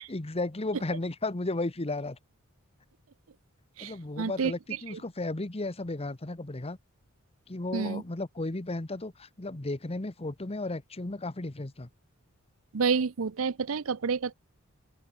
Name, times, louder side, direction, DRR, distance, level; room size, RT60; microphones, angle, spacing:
voice 1, 0.1-2.2 3.8-6.8 7.5-11.9, left 2 dB, 30° left, 1.1 m, -34 dB
voice 2, 3.8-4.5 7.7-8.0 12.7-14.3, right 5 dB, 75° right, 0.6 m, -29 dB
open air
head